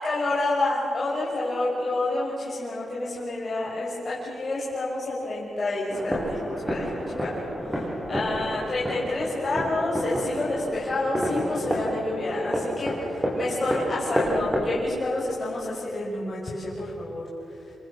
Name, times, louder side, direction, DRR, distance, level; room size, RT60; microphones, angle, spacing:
voice 1, 0.0-6.4 6.7-17.2, left 2 dB, 35° left, -6 dB, 6.0 m, -29 dB
sound 1, 5.9-14.8, equal, 10° right, 6.8 m, -30 dB
28.5 x 24.5 x 7.3 m, 2.8 s
cardioid pair, 115°, 0 cm